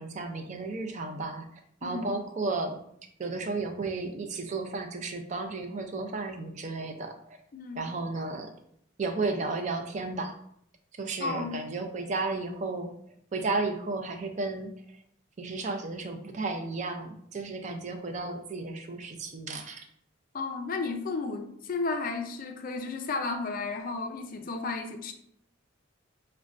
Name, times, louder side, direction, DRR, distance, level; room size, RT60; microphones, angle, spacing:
voice 1, 0.0-1.5 1.8-2.8 3.2-7.2 7.8-8.5 9.0-10.3 11.0-12.9 13.3-15.0 15.4-19.9, right 3 dB, 40° right, 6 dB, 0.4 m, -33 dB
voice 2, 7.5-7.8 11.2-11.6 20.3-25.1, left 3 dB, 45° left, 6 dB, 0.4 m, -33 dB
5.1 x 2.2 x 2.4 m, 0.69 s
head